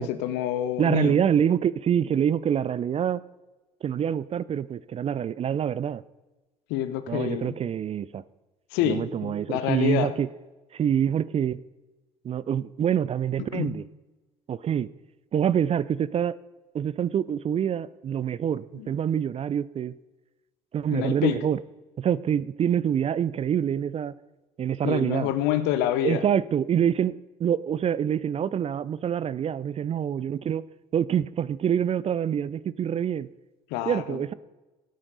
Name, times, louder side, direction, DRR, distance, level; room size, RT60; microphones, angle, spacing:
voice 1, 0.0-1.2 6.7-7.6 8.7-10.1 13.5-13.8 18.7-18.9 20.9-21.4 24.8-26.2 33.7-34.2, left 11 dB, 65° left, 11 dB, 1.0 m, -27 dB
voice 2, 0.8-3.2 3.8-6.0 7.1-8.2 8.8-10.3 10.7-11.6 12.2-13.8 14.5-14.9 15.3-16.3 16.7-19.9 20.7-21.6 22.0-24.1 24.6-25.3 26.0-30.6 30.9-33.3 33.9-34.3, right 9 dB, 35° right, 18 dB, 0.4 m, -26 dB
17.0 x 8.7 x 4.0 m, 1.1 s
hypercardioid pair, 55°, 19 cm